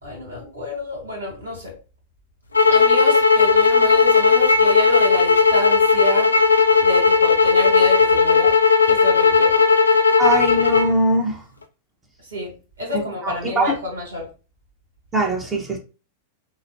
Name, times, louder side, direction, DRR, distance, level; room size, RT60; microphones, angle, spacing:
voice 1, 0.0-1.7 2.6-6.3 6.8-8.5 8.8-9.5 12.3-14.3, left 1 dB, 80° right, -1 dB, 1.5 m, -29 dB
sound 1, 2.5-10.9, left 5 dB, 85° left, 0.4 m, -16 dB
voice 2, 10.2-11.4 13.2-13.7 15.1-15.8, right 1 dB, 20° right, 1 dB, 1.0 m, -21 dB
5.1 x 2.1 x 2.7 m, 0.33 s
figure-of-eight pair, 95°, 0 cm